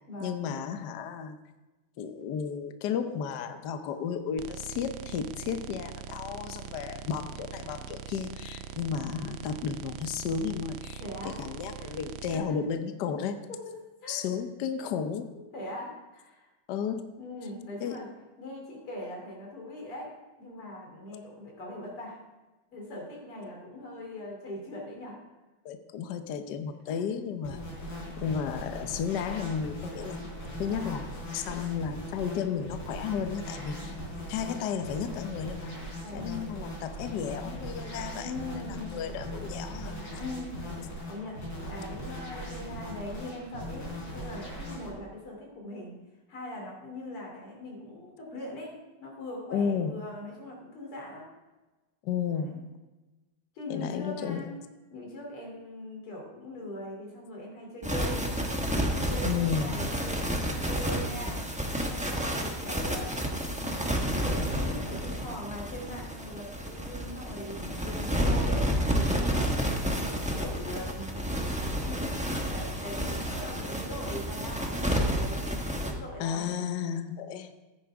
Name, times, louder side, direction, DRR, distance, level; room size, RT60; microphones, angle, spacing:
voice 1, 0.2-1.4 2.0-13.4 14.1-15.3 16.7-17.1 17.8-18.0 25.6-27.7 28.2-30.2 30.6-33.9 34.3-35.7 36.1-38.3 38.7-40.1 49.5-50.0 52.0-52.7 53.7-54.5 59.2-59.9 76.2-77.5, left 7 dB, 65° left, 8 dB, 1.2 m, -33 dB
sound 1, 4.4-12.4, right 8 dB, 75° right, 1.4 m, -42 dB
voice 2, 11.0-11.4 11.8-11.9 12.3-12.6 13.5-13.6 14.0-14.3 15.3-16.5 17.2-18.1 18.4-22.2 22.7-25.2 26.9-27.0 27.8-27.9 30.6-31.0 33.8-34.1 36.0-36.3 38.1-39.0 40.2-40.6 41.1-46.0 46.3-51.3 52.3-52.6 53.5-54.6 54.9-58.5 58.9-61.5 62.1-63.2 63.4-69.4 69.8-76.5, left 1 dB, 80° left, -1 dB, 4.0 m, -41 dB
sound 2, 27.4-44.9, equal, 45° left, 4.3 m, -39 dB
sound 3, 57.8-75.9, equal, 5° right, 0.5 m, -30 dB
14.0 x 10.0 x 3.5 m, 1.1 s
omnidirectional pair, 2.4 m